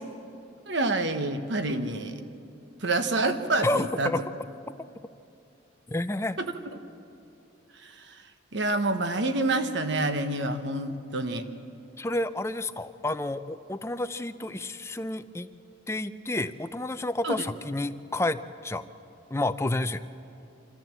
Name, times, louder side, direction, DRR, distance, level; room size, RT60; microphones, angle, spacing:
voice 1, 0.7-2.2 2.8-4.1 6.4-6.5 7.8-8.2 8.5-11.5 17.2-17.4, right 2 dB, 60° right, 8 dB, 1.1 m, -27 dB
voice 2, 3.6-4.2 5.9-6.4 12.0-15.5 15.9-18.8 19.3-20.0, left 2 dB, 15° left, 10 dB, 0.5 m, -30 dB
25.5 x 14.0 x 7.5 m, 2.7 s
head